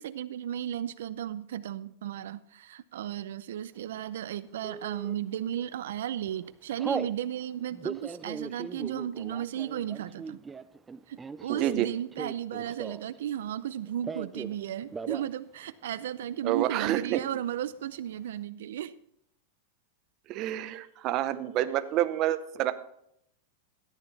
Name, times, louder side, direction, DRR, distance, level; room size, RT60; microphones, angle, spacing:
voice 1, 0.0-10.4 11.1-19.0, right 10 dB, 75° right, 13 dB, 0.5 m, -34 dB
Telephone, 4.6-5.1 5.7-6.0 6.3-7.1 7.7-13.2 13.5-14.6 14.9-15.3 15.6-15.7 16.0-16.6, right 5 dB, 10° right, 0.3 m, -38 dB
voice 2, 16.4-17.2 20.3-22.7, right 13 dB, 35° right, 11 dB, 0.7 m, -28 dB
13.5 x 9.1 x 4.1 m, 0.74 s
supercardioid pair, 160°, 0 cm